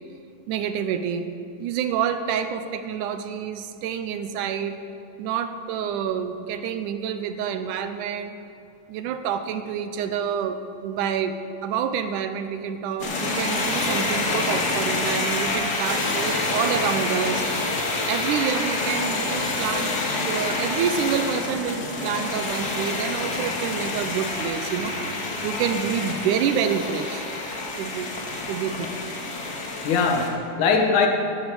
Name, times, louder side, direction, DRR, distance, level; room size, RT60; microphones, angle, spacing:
voice 1, 0.5-1.3 1.6-4.8 5.2-8.3 8.9-17.5 18.1-19.9 20.2-25.0 25.4-27.2 27.8-28.1 28.5-28.9, right 8 dB, 80° right, 9 dB, 2.1 m, -28 dB
sound 1, 13.0-30.3, left 2 dB, 45° left, 1.5 m, -27 dB
voice 2, 29.8-31.1, left 5 dB, 70° left, 3 dB, 2.6 m, -22 dB
12.5 x 12.0 x 4.9 m, 2.8 s
omnidirectional pair, 3.7 m